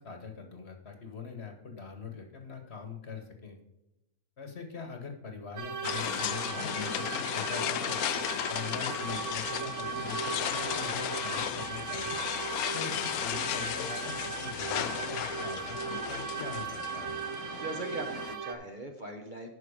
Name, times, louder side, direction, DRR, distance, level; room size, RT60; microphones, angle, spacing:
voice 1, 0.0-3.6 4.4-12.2 12.7-17.2, left 5 dB, 45° left, 5 dB, 1.4 m, -43 dB
sound 1, 5.6-18.5, right 7 dB, 55° right, 1.0 m, -38 dB
sound 2, 5.8-18.3, left 11 dB, 75° left, 1.0 m, -35 dB
voice 2, 17.5-19.5, right 2 dB, 40° right, 3 dB, 0.9 m, -40 dB
9.6 x 5.9 x 4.9 m, 0.93 s
omnidirectional pair, 1.6 m